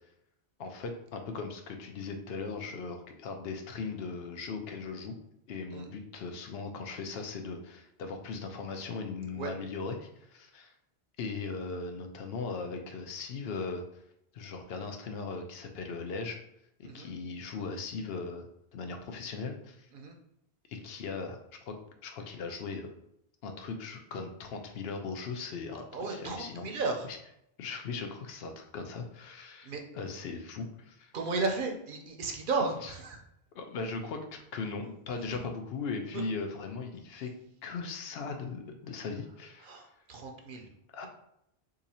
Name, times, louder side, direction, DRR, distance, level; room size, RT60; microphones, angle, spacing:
voice 1, 0.6-5.2 5.5-10.7 11.2-13.8 14.3-16.4 16.8-18.5 18.7-19.9 20.7-21.4 21.7-21.8 22.0-22.9 23.4-26.6 27.1-27.2 27.6-31.1 32.8-32.9 33.5-37.3 37.6-39.8 40.9-41.1, left 4 dB, 75° left, 4 dB, 0.8 m, -38 dB
voice 2, 25.9-27.1 29.6-29.8 31.1-33.2 35.3-35.4 36.1-36.2 39.6-40.7, right 3 dB, 60° right, 2 dB, 0.7 m, -34 dB
2.8 x 2.6 x 4.1 m, 0.77 s
omnidirectional pair, 1.0 m